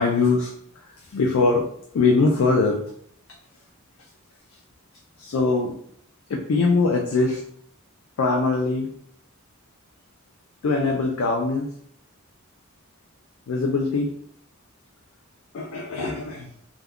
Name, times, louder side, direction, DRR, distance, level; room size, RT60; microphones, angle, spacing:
voice 1, 0.0-1.7 1.9-2.8 5.2-5.8 6.3-7.4 8.2-8.9 10.6-11.7 13.5-14.1 15.5-16.5, left 3 dB, 75° left, 1 dB, 0.4 m, -22 dB
2.2 x 2.2 x 3.5 m, 0.66 s
head